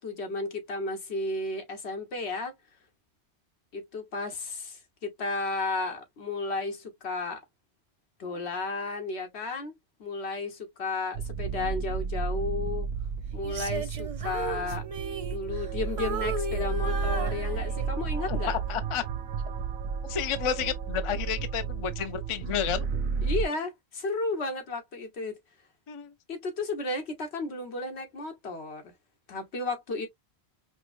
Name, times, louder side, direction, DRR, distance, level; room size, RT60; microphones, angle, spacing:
voice 1, 0.0-2.5 3.7-7.4 8.2-9.7 10.0-12.9 13.3-14.8 15.2-18.5 23.2-25.4 26.3-28.9 29.3-30.1, left 3 dB, 80° left, 1.5 m, -33 dB
sound 1, 11.1-23.5, right 5 dB, 80° right, 0.8 m, -32 dB
Female singing, 13.4-15.7 16.0-18.0 18.6-18.8, right 2 dB, 40° right, 0.5 m, -35 dB
voice 2, 18.3-19.0 20.0-22.9 25.9-26.1, left 8 dB, 40° left, 0.4 m, -31 dB
5.2 x 2.1 x 2.3 m
omnidirectional pair, 1.1 m